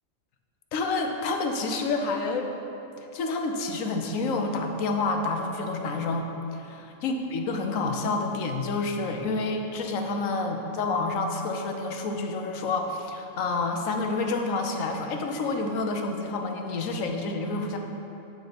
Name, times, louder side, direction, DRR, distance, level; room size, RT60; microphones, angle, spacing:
voice 1, 0.7-2.5 3.0-6.3 7.0-17.8, left 3 dB, 75° left, 4 dB, 1.2 m, -28 dB
8.7 x 6.4 x 5.1 m, 2.9 s
omnidirectional pair, 1.4 m